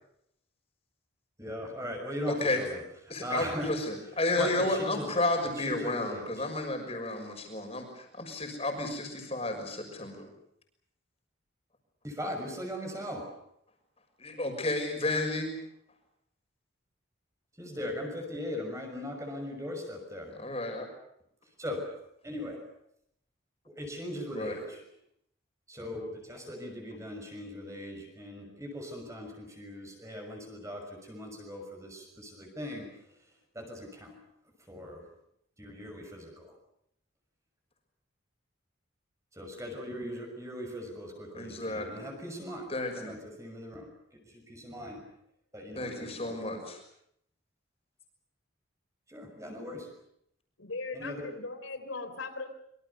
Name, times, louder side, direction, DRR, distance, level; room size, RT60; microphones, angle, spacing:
voice 1, 1.4-2.8 3.2-3.8 4.4-5.2 5.5-6.5 12.0-13.4 17.6-20.4 21.6-22.6 23.6-24.9 25.7-33.0 33.5-34.2 34.6-35.1 35.6-36.5 39.3-43.9 44.2-45.1 45.5-46.7 49.1-49.9 50.9-51.3, left 1 dB, 15° right, 3 dB, 6.1 m, -39 dB
voice 2, 2.3-2.6 3.1-10.3 14.2-15.5 20.4-20.9 24.3-24.6 41.3-42.1 42.7-43.1 45.8-46.8, left 2 dB, 30° left, 4 dB, 6.3 m, -32 dB
voice 3, 50.6-52.5, left 3 dB, 80° left, 8 dB, 3.6 m, -38 dB
26.0 x 25.0 x 6.9 m, 0.73 s
head